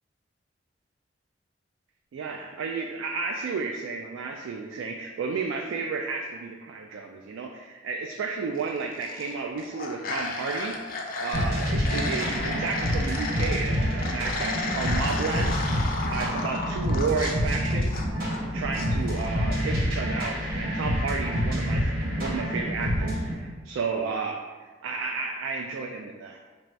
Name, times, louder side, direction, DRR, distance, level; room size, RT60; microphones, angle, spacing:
voice 1, 2.1-10.8 11.2-18.1 18.5-26.4, right 4 dB, 85° right, 2 dB, 0.3 m, -32 dB
sound 1, 8.8-9.3 9.6-13.5 14.0-18.4 18.7-19.3, left 3 dB, 50° left, 0.4 m, -33 dB
sound 2, 11.3-23.3, equal, 50° right, 1.3 m, -27 dB
3.1 x 2.6 x 4.4 m, 1.3 s
head